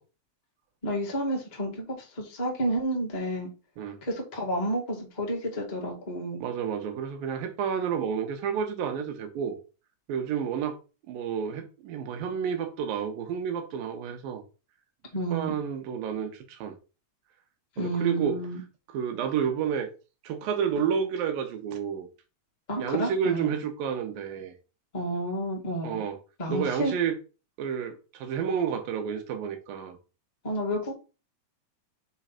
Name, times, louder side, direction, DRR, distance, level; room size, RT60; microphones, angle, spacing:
voice 1, 0.8-3.5 4.0-6.4 15.1-15.5 17.8-18.6 22.7-23.5 24.9-26.0 26.4-26.9 30.4-30.9, right 1 dB, 20° left, 1.0 m, -30 dB
voice 2, 6.4-9.6 10.1-10.8 11.1-14.4 15.3-16.8 17.8-18.4 18.9-19.9 20.2-22.1 22.8-24.5 25.8-26.2 26.5-27.2 27.6-30.0, right 7 dB, 70° right, 2.7 m, -30 dB
6.0 x 3.9 x 5.7 m
omnidirectional pair, 4.5 m